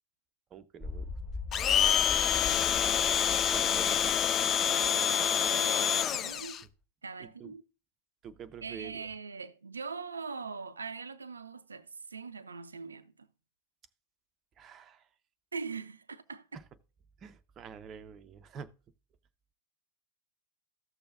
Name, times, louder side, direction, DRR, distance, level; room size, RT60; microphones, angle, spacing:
voice 1, 0.5-1.1 3.5-4.2 7.2-7.5 8.2-9.1 14.6-15.0 16.5-16.6 17.2-18.7, right 7 dB, 30° right, 0.6 m, -47 dB
sound 1, 0.8-5.5 5.8-5.9, left 2 dB, 10° left, 1.5 m, -42 dB
Domestic sounds home sounds, 1.5-6.6, left 9 dB, 30° left, 0.4 m, -27 dB
voice 2, 2.3-2.8 5.6-6.6 7.0-7.6 8.6-13.3 15.5-16.5, right 5 dB, 75° right, 0.5 m, -42 dB
14.0 x 6.8 x 2.4 m
figure-of-eight pair, 90°, 0 cm